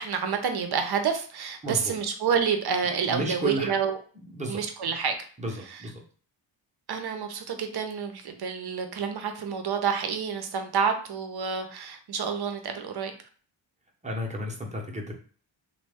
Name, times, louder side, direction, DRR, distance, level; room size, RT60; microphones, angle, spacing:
voice 1, 0.0-4.0 4.4-5.1 5.7-5.8 6.9-13.1, right 6 dB, 55° right, 6 dB, 0.8 m, -28 dB
voice 2, 1.6-1.9 3.1-3.8 4.3-4.6 5.4-6.0 14.0-15.1, right 1 dB, 15° right, 0 dB, 0.9 m, -32 dB
3.1 x 2.3 x 3.5 m, 0.42 s
cardioid pair, 85°, 46 cm